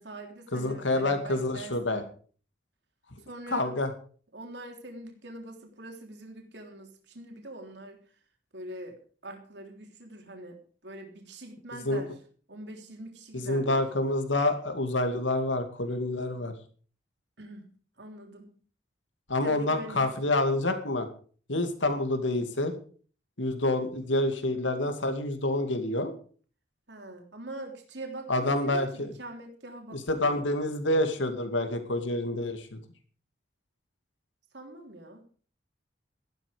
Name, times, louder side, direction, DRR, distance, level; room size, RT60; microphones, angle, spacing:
voice 1, 0.0-2.1 3.2-3.7 4.3-8.0 8.5-9.0 9.2-10.6 10.8-12.1 12.5-13.8 17.4-17.7 18.0-18.5 19.4-20.3 26.9-30.4 34.5-35.3, right 1 dB, 70° right, 3 dB, 3.4 m, -43 dB
voice 2, 0.5-2.0 3.5-3.9 11.9-12.0 13.3-16.5 19.3-21.1 21.5-22.7 23.4-26.1 28.3-29.1 29.9-32.8, left 2 dB, 85° left, 7 dB, 2.3 m, -27 dB
14.5 x 12.0 x 5.2 m, 0.43 s
head